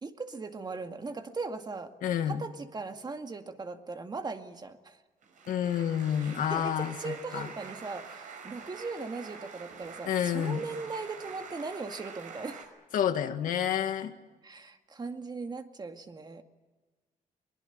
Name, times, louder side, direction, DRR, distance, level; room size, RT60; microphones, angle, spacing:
voice 1, 0.0-1.9 2.3-5.0 6.2-12.6 14.4-16.4, right 4 dB, 30° right, 6 dB, 2.1 m, -39 dB
voice 2, 2.0-2.4 5.5-7.5 10.1-10.6 12.9-14.2, left 9 dB, 80° left, 8 dB, 1.9 m, -29 dB
sound 1, 5.2-12.6, right 5 dB, 70° right, 5.8 m, -46 dB
22.5 x 21.5 x 9.1 m, 1.3 s
cardioid pair, 100°, 14 cm